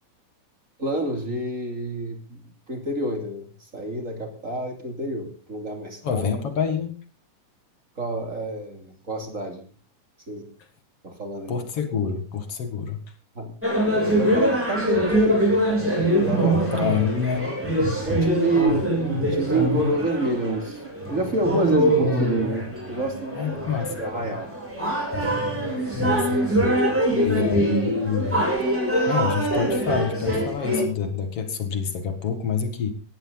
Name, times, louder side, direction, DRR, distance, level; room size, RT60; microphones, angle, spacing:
voice 1, 0.8-6.2 8.0-9.7 10.3-10.5 11.0-11.5 13.3-13.6 13.9-16.6 18.0-23.5 24.0-24.5 26.8-27.3, right 2 dB, 25° right, 4 dB, 3.0 m, -28 dB
voice 2, 6.0-7.0 11.5-13.0 16.3-17.5 23.4-24.0 25.9-26.4 26.8-26.9 27.2-28.4 29.1-32.9, left 6 dB, 50° left, 8 dB, 2.7 m, -27 dB
sound 1, 13.6-30.8, right 1 dB, 5° right, 7.9 m, -23 dB
18.0 x 14.0 x 4.0 m, 0.37 s
omnidirectional pair, 3.5 m